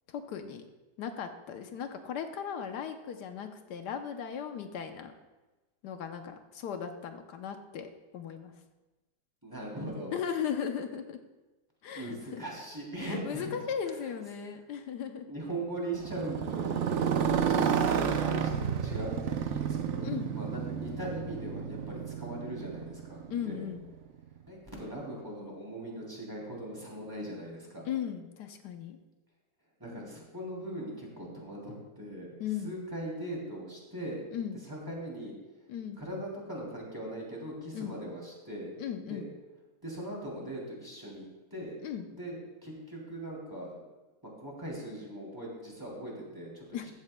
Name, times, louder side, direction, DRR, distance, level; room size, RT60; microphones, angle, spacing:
voice 1, 0.1-0.6 1.0-5.1 5.8-8.5 10.1-11.2 11.8-12.4 13.0-15.3 17.1-17.4 20.0-20.4 23.3-23.9 27.8-29.0 32.4-32.7 34.3-34.6 35.7-36.0 37.7-37.9 38.8-39.3 41.8-42.1 46.7-46.9, left 8 dB, 80° left, 7 dB, 1.4 m, -37 dB
voice 2, 9.4-10.1 11.9-13.6 15.3-17.3 17.7-23.6 24.5-27.9 29.8-34.2 34.7-35.3 36.0-38.7 39.1-39.2 39.8-41.8 42.1-43.8 44.4-46.9, right 1 dB, 10° right, -3 dB, 2.9 m, -40 dB
Motorcycle, 15.9-24.0, right 7 dB, 60° right, 0.8 m, -31 dB
14.5 x 12.5 x 2.2 m, 1.1 s
omnidirectional pair, 1.8 m